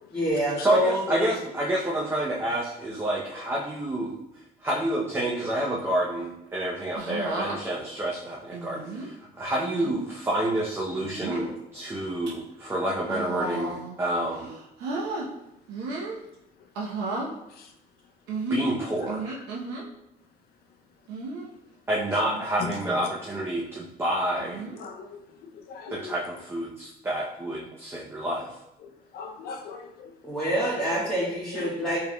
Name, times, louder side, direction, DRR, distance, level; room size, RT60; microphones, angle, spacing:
voice 1, 0.1-1.3 30.2-32.0, equal, 5° left, -10 dB, 1.2 m, -26 dB
voice 2, 0.6-14.5 18.5-19.2 21.9-24.6 25.9-28.6, right 1 dB, 15° right, -4 dB, 0.6 m, -29 dB
sound 1, 7.0-7.6 8.5-9.1 9.7-9.9 10.9-11.5 12.0-12.3 13.0-14.0 14.3-15.3 15.7-16.2 16.7-17.3 18.3-19.8 21.1-21.5 22.1-22.4 22.7-22.8 24.4-24.8 25.9-26.2, right 3 dB, 90° right, 0.8 m, -34 dB
voice 3, 24.8-25.2 25.7-26.0 29.1-30.1 31.5-31.7, left 5 dB, 65° left, 3 dB, 0.5 m, -38 dB
4.5 x 3.4 x 2.2 m, 0.86 s
cardioid pair, 110°, 17 cm